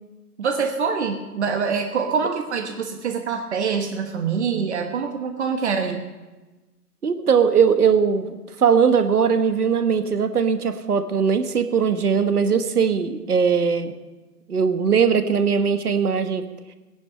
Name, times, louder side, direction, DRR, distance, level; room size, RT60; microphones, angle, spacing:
voice 1, 0.4-6.1, right 6 dB, 45° right, 5 dB, 1.3 m, -25 dB
voice 2, 7.0-13.9 14.5-16.4 16.7-16.8, right 6 dB, 70° right, 9 dB, 1.4 m, -20 dB
17.5 x 10.5 x 5.7 m, 1.1 s
figure-of-eight pair, 135°, 46 cm